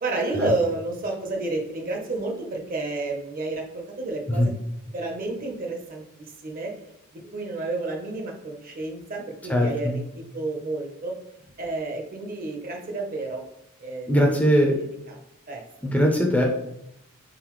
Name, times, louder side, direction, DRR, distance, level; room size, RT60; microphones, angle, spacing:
voice 1, 0.0-4.5 4.9-6.7 7.1-11.1 11.6-13.4 13.8-14.1 14.6-15.2 15.5-15.6, right 2 dB, 40° right, 2 dB, 0.7 m, -30 dB
voice 2, 9.5-10.0 14.1-14.8 15.8-16.4, equal, 5° left, 0 dB, 0.5 m, -20 dB
3.9 x 3.9 x 3.0 m, 0.79 s
head